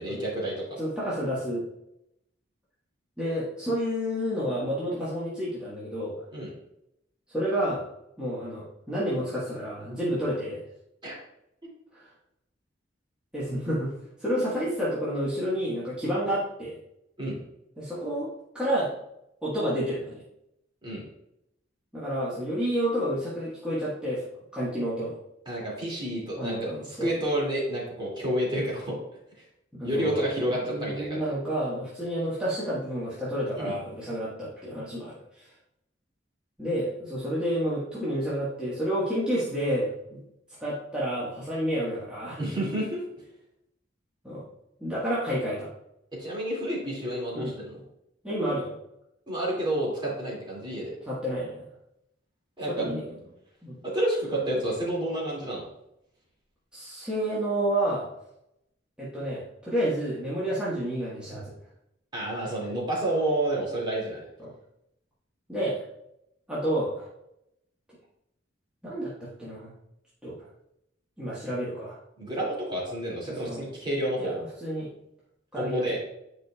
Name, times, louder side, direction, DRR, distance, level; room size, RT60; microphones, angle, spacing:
voice 1, 0.0-0.8 6.3-6.5 11.0-11.1 17.2-17.4 20.8-21.0 25.5-29.0 29.8-31.2 33.6-33.7 42.4-43.0 46.1-47.8 49.3-51.0 52.6-52.9 53.8-55.7 62.1-64.2 72.2-74.4 75.5-76.0, right 1 dB, 25° right, -4 dB, 2.5 m, -29 dB
voice 2, 0.8-1.6 3.2-6.2 7.3-7.8 8.2-10.6 11.9-12.1 13.3-16.8 17.8-18.3 18.5-18.9 19.4-20.2 21.9-24.2 24.5-25.2 26.4-27.1 29.8-30.2 30.6-35.5 36.6-40.2 40.6-42.4 44.2-44.4 44.8-45.7 47.3-47.5 48.2-48.8 51.1-51.6 52.7-53.2 53.6-53.8 56.7-58.1 59.0-61.5 64.4-64.5 65.5-65.8 66.5-67.1 68.8-69.7 70.2-70.4 71.2-72.0 73.3-73.7 74.2-74.9 75.5-75.8, equal, 5° right, -10 dB, 1.5 m, -30 dB
9.4 x 5.1 x 2.4 m, 0.82 s
head